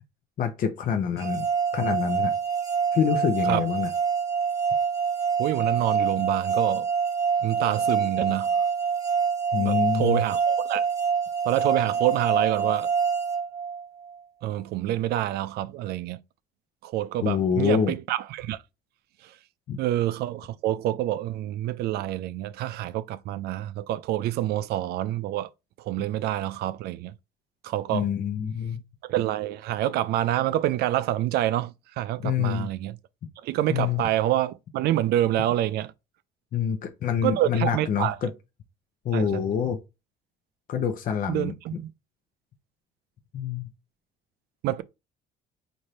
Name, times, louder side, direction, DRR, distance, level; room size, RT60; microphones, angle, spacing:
voice 1, 0.4-1.5 1.7-2.3 2.9-3.9 9.5-10.2 17.2-17.9 19.7-19.8 27.9-28.8 32.2-32.7 33.7-34.0 36.5-38.3 39.0-39.8 40.7-41.5 43.3-43.7, left 7 dB, 55° left, 0.7 m, -26 dB
sound 1, 1.2-14.2, right 6 dB, 20° right, 1.1 m, -26 dB
voice 2, 5.4-6.9 7.4-8.6 9.6-10.9 11.4-12.9 14.4-16.2 16.8-18.6 19.2-19.3 19.8-25.5 25.8-27.1 27.6-28.1 29.1-33.0 33.4-35.9 37.2-38.2 39.1-39.4 41.3-41.9 44.6-44.8, right 13 dB, 75° right, 0.4 m, -27 dB
3.2 x 2.6 x 4.2 m
cardioid pair, 110°, 17 cm